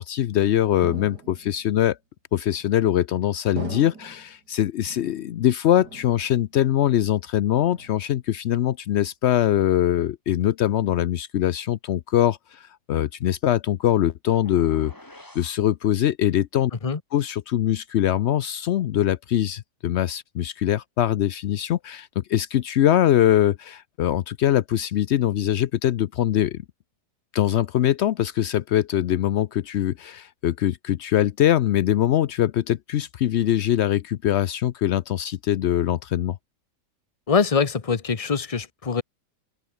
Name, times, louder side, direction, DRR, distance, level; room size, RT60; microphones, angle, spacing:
voice 1, 0.0-2.0 2.3-14.9 15.3-16.7 17.1-26.6 27.3-36.4, left 11 dB, 85° left, 0.6 m, -22 dB
sound 1, 0.8-1.7 2.5-3.0 3.6-4.4 4.9-5.5 5.8-6.6 6.9-7.3 7.7-8.3, right 4 dB, 70° right, 4.0 m, -40 dB
sound 2, 14.3-15.6, left 1 dB, 10° left, 3.0 m, -46 dB
voice 2, 37.3-39.0, left 5 dB, 25° left, 0.9 m, -23 dB
open air
omnidirectional pair, 1.8 m